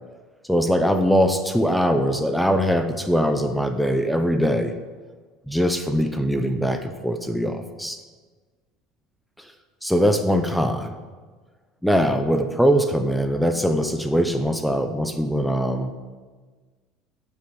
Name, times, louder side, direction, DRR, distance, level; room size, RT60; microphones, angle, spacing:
voice 1, 0.5-4.7 5.5-8.0 9.8-10.9 11.8-15.9, equal, ahead, 7 dB, 0.6 m, -22 dB
8.2 x 6.1 x 7.8 m, 1.4 s
cardioid pair, 130°, 0 cm